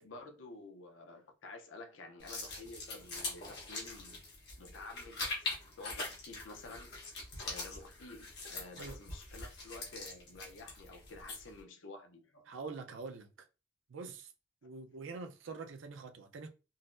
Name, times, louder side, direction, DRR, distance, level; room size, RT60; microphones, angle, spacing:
voice 1, 0.0-4.2 4.6-5.5 5.8-7.0 7.4-12.4, left 3 dB, 85° left, 0.6 m, -51 dB
sound 1, 2.2-11.6, left 3 dB, 60° left, 1.1 m, -43 dB
voice 2, 12.5-13.3 13.9-14.3 14.6-16.5, right 4 dB, 90° right, 0.5 m, -45 dB
3.8 x 2.0 x 2.5 m
head